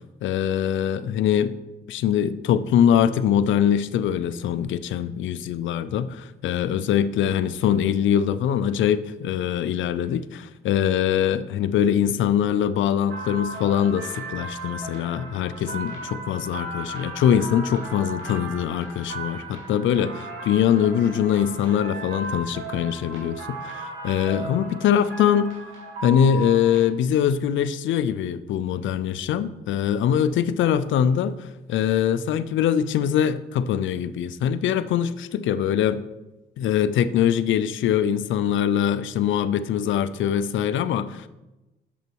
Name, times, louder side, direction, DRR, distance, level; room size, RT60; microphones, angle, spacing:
voice 1, 0.2-1.5 1.9-25.5 26.0-36.0 36.6-41.3, left 9 dB, 75° left, 14 dB, 0.6 m, -23 dB
sound 1, 13.1-26.8, right 2 dB, 90° right, 2.6 m, -36 dB
8.2 x 7.1 x 4.6 m, 1.0 s
cardioid pair, 90°, 20 cm